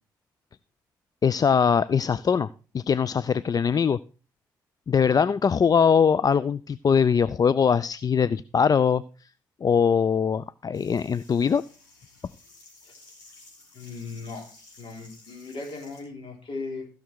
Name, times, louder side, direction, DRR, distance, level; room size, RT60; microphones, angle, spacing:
voice 1, 1.2-2.5 2.7-4.0 4.9-9.0 9.6-11.6, left 6 dB, 40° left, 18 dB, 0.4 m, -22 dB
sound 1, 10.7-16.0, left 2 dB, 85° left, 3.9 m, -53 dB
voice 2, 13.7-14.5 14.8-16.9, left 3 dB, 60° left, 3 dB, 3.9 m, -38 dB
15.5 x 6.4 x 4.7 m, 0.36 s
hypercardioid pair, 40°, 10 cm